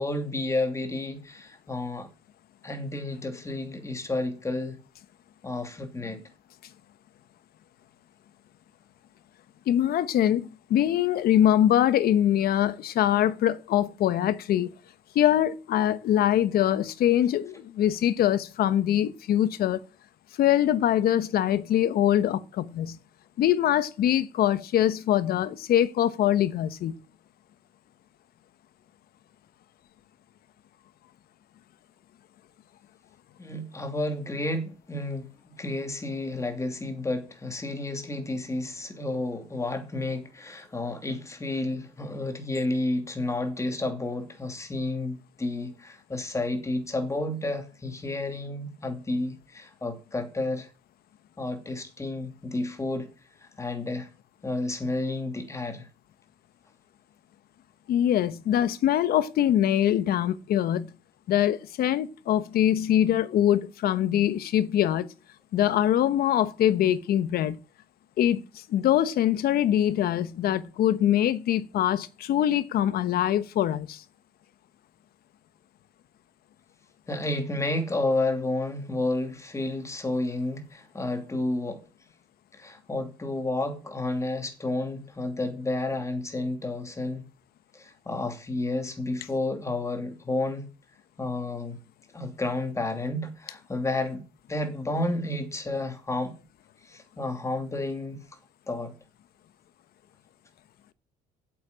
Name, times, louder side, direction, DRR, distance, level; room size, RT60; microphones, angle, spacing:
voice 1, 0.0-2.1 2.6-4.8 5.4-6.2 33.4-50.7 51.4-53.1 53.4-54.1 54.4-55.9 77.1-81.8 82.6-87.3 87.7-90.7 91.2-91.8 92.1-94.2 94.5-96.4 96.8-98.2 98.7-98.9, left 2 dB, 15° left, 2.8 m, -31 dB
voice 2, 9.7-14.7 15.1-19.8 20.4-23.0 23.4-27.0 57.9-60.9 61.3-65.1 65.5-67.6 68.2-74.0, left 11 dB, 65° left, 1.0 m, -23 dB
8.4 x 8.1 x 8.6 m
cardioid pair, 110°, 17 cm